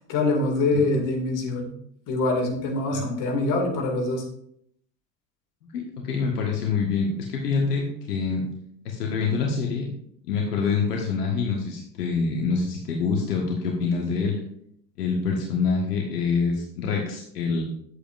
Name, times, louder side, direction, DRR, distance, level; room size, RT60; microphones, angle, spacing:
voice 1, 0.0-1.7 2.1-4.2, left 2 dB, 40° left, 1 dB, 2.5 m, -24 dB
voice 2, 5.7-8.4 8.8-9.9 10.3-14.3 15.0-17.6, left 5 dB, 65° left, -1 dB, 1.6 m, -26 dB
9.9 x 8.3 x 2.6 m, 0.70 s
figure-of-eight pair, 80°, 50 cm